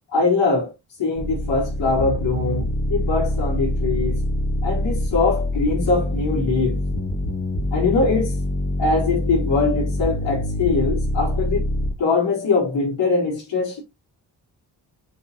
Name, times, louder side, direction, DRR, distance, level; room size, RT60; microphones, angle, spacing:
voice 1, 0.1-0.7 1.0-4.2 4.6-6.8 7.7-8.4 8.8-11.7 12.0-13.8, left 4 dB, 85° left, 4.0 m, -22 dB
sound 1, 1.2-11.9, left 1 dB, 55° left, 2.4 m, -25 dB
8.3 x 4.2 x 2.9 m
supercardioid pair, 40°, 44 cm